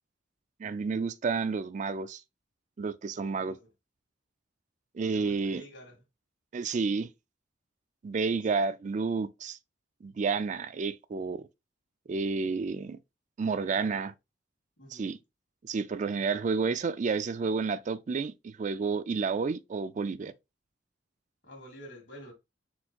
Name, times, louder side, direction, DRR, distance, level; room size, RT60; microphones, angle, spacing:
voice 1, 0.6-2.2 2.8-3.6 4.9-5.6 6.5-7.1 8.0-9.6 10.0-11.5 12.1-13.0 13.4-14.1 14.9-15.2 15.6-20.3, right 4 dB, 40° right, 0.4 m, -30 dB
voice 2, 3.1-3.7 5.0-6.0 8.5-8.6 13.5-14.1 14.8-15.2 16.3-16.4 21.4-22.3, equal, 75° left, 2.0 m, -50 dB
4.4 x 4.2 x 2.8 m
head